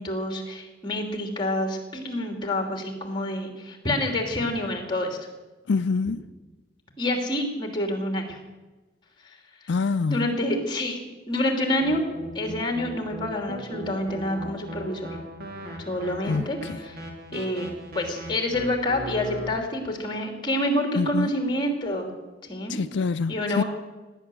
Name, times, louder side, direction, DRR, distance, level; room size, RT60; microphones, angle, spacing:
voice 1, 0.0-5.2 7.0-8.4 9.2-9.7 10.1-11.0 11.3-12.0 12.3-15.1 15.8-17.0 17.3-17.7 17.9-22.1 22.5-22.8 23.3-23.6, left 1 dB, 25° left, 2.8 m, -28 dB
voice 2, 5.7-6.2 9.7-10.3 16.3-16.8 21.0-21.3 22.7-23.6, left 4 dB, 75° left, 0.4 m, -25 dB
sound 1, 11.8-19.5, equal, 55° right, 2.8 m, -38 dB
17.5 x 10.0 x 7.8 m
head